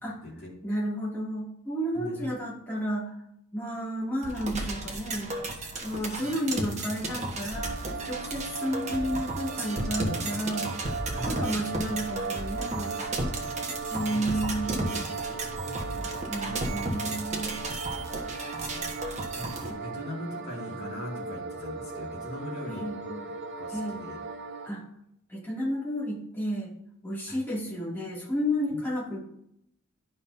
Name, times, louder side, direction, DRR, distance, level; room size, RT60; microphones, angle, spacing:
voice 1, 0.6-3.2 3.5-5.4 5.8-10.7 11.2-13.1 13.9-15.0 16.3-17.6 22.7-23.0 23.7-24.1 24.6-24.8 25.3-26.7 27.0-29.2, equal, 10° left, -7 dB, 2.5 m, -32 dB
sound 1, 4.2-19.7, right 2 dB, 30° right, 1.3 m, -34 dB
sound 2, 4.5-13.5, equal, 10° right, 2.1 m, -53 dB
sound 3, 7.5-24.7, right 4 dB, 55° right, 0.8 m, -37 dB
voice 2, 13.8-14.4 15.4-16.1 16.5-16.6 17.0-17.1 18.7-18.9 19.3-23.1 23.6-24.2 27.3-27.4, left 1 dB, 50° left, -3 dB, 2.4 m, -40 dB
11.5 x 5.7 x 2.7 m, 0.77 s
head